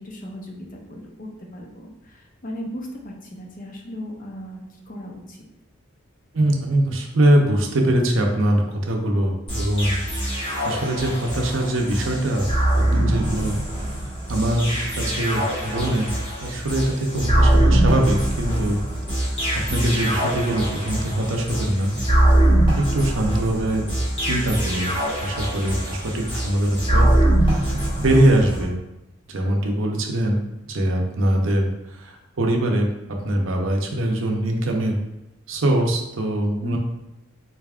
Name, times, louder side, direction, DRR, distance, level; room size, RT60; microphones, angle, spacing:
voice 1, 0.0-5.4 36.6-36.8, equal, 40° left, 0 dB, 0.6 m, -36 dB
voice 2, 6.3-10.4 10.6-12.5 12.9-13.6 14.3-16.1 16.4-18.8 19.1-19.4 19.7-21.9 22.8-23.8 24.3-25.0 25.2-27.1 27.5-28.7 29.3-32.9 33.2-35.0 35.5-36.8, right 1 dB, 70° right, 2 dB, 0.7 m, -22 dB
sound 1, 9.5-28.7, right 1 dB, 25° left, 1.2 m, -22 dB
3.9 x 3.5 x 2.4 m, 0.92 s
head